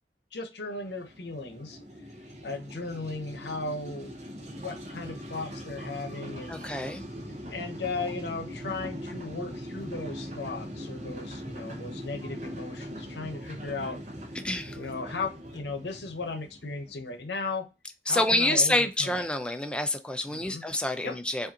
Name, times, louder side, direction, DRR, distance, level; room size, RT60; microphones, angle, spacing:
voice 1, 0.3-1.8 2.4-4.2 4.6-6.6 7.5-14.0 14.7-17.7 18.1-19.2 20.3-20.6 21.0-21.1, left 3 dB, 70° left, 0.8 m, -36 dB
sound 1, 0.7-17.4, equal, 40° right, 0.8 m, -41 dB
voice 2, 6.5-7.0 14.4-14.8 18.1-21.5, left 1 dB, 5° left, 0.4 m, -27 dB
4.9 x 2.6 x 2.7 m
head